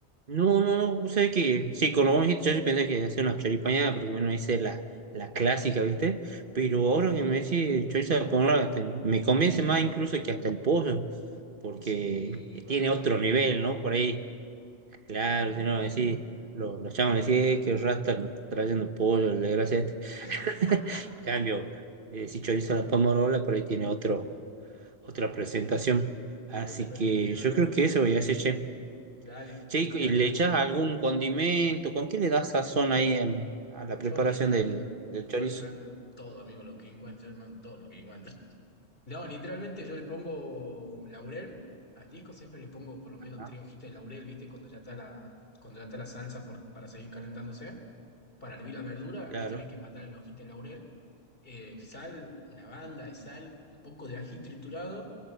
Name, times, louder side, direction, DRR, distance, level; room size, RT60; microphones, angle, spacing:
voice 1, 0.3-4.8 5.1-11.1 11.6-12.4 12.7-14.2 15.1-16.2 16.5-21.7 22.1-24.3 25.0-26.1 26.5-28.7 29.7-34.8 35.1-35.6 43.4-43.5 49.3-49.6, right 4 dB, 55° right, 8 dB, 1.2 m, -27 dB
voice 2, 11.8-13.8 20.2-21.0 21.4-21.7 26.6-27.7 29.2-30.2 34.0-34.9 35.3-38.4 39.0-41.6 42.0-45.3 45.6-47.8 48.4-50.8 51.4-55.0, left 1 dB, 60° left, 3 dB, 3.5 m, -43 dB
25.0 x 24.0 x 8.2 m, 2.4 s
omnidirectional pair, 1.1 m